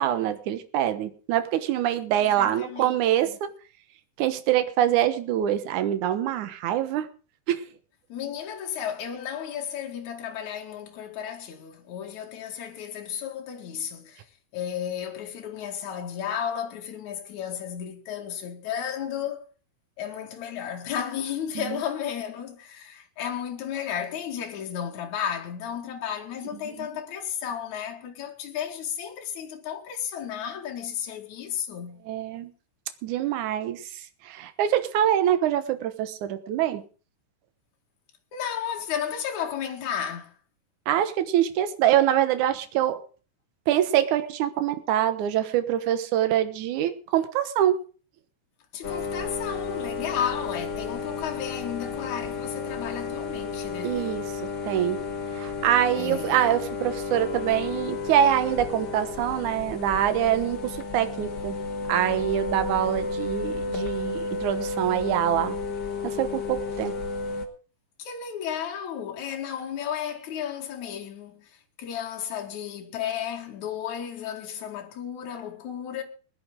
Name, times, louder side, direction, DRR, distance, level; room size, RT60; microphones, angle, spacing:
voice 1, 0.0-3.3 4.2-7.1 7.5-7.6 21.6-21.8 26.8-26.9 32.1-32.5 33.0-33.8 34.3-36.8 40.9-43.0 43.7-47.8 53.8-54.3 54.6-55.0 55.3-61.6 61.9-65.6 66.0-67.0, right 11 dB, 65° right, 2.3 m, -24 dB
voice 2, 2.1-3.4 8.1-14.2 14.5-19.4 20.0-32.0 38.3-40.3 48.7-54.0 55.9-56.4 68.0-71.5 71.8-76.0, left 9 dB, 55° left, 3.0 m, -33 dB
sound 1, 48.8-67.5, left 4 dB, 75° left, 0.9 m, -32 dB
20.5 x 11.0 x 3.8 m
omnidirectional pair, 4.4 m